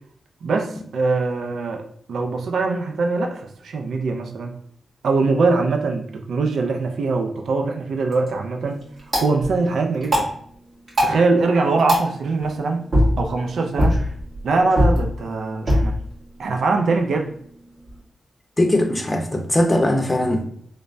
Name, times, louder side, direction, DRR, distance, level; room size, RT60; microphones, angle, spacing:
voice 1, 0.4-1.8 2.1-4.5 5.0-8.8 9.2-10.3 11.0-12.9 13.2-14.0 14.4-15.9 16.4-17.3, right 3 dB, 80° right, 3 dB, 0.3 m, -22 dB
sound 1, 7.9-18.0, equal, 50° right, 1.4 m, -25 dB
voice 2, 18.6-20.5, left 1 dB, 20° left, 3 dB, 0.6 m, -20 dB
3.2 x 2.1 x 2.5 m, 0.63 s
cardioid pair, 60°, 0 cm